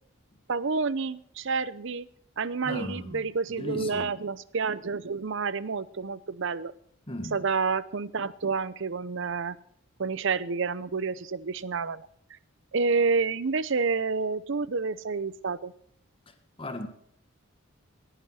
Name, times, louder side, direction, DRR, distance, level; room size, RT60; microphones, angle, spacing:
voice 1, 0.5-2.1 2.4-6.7 7.3-9.6 10.0-12.1 12.7-15.7, right 4 dB, 60° right, 0.7 m, -29 dB
voice 2, 2.6-4.1 7.1-7.4 16.3-16.9, left 1 dB, 25° left, 1.6 m, -37 dB
18.0 x 10.5 x 4.3 m
head